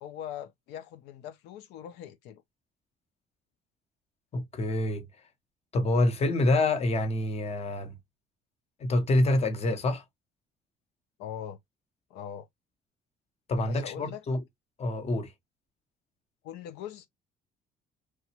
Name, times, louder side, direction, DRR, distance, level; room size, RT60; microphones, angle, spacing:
voice 1, 0.0-2.4 11.2-11.6 12.1-12.5 13.7-14.2 16.4-17.1, left 10 dB, 90° left, 0.5 m, -41 dB
voice 2, 4.3-5.0 5.7-7.9 8.8-10.0 13.5-14.4 14.8-15.3, left 2 dB, 40° left, 0.9 m, -26 dB
3.0 x 2.2 x 2.9 m
cardioid pair, 110°, 17 cm